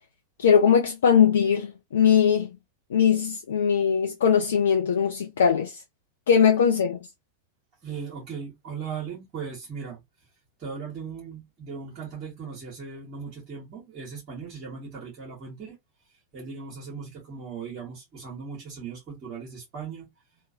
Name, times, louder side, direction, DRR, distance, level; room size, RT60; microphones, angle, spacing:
voice 1, 0.4-2.5 2.9-5.8 6.3-7.0, left 7 dB, 65° left, 0.4 m, -20 dB
voice 2, 7.8-10.0 10.6-15.8 16.3-20.1, right 6 dB, 40° right, 1.3 m, -38 dB
2.9 x 2.4 x 2.6 m
figure-of-eight pair, 90°, 0 cm